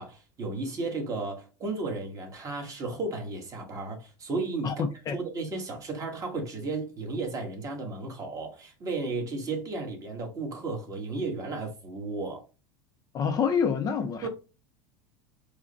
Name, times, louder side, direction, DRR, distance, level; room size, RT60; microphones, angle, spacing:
voice 1, 0.0-4.7 5.1-12.4 14.2-14.3, right 3 dB, 30° right, 1.4 m, -34 dB
voice 2, 4.6-5.2 13.1-14.3, left 6 dB, 30° left, 0.5 m, -27 dB
4.7 x 2.2 x 3.9 m
supercardioid pair, 130°, 12 cm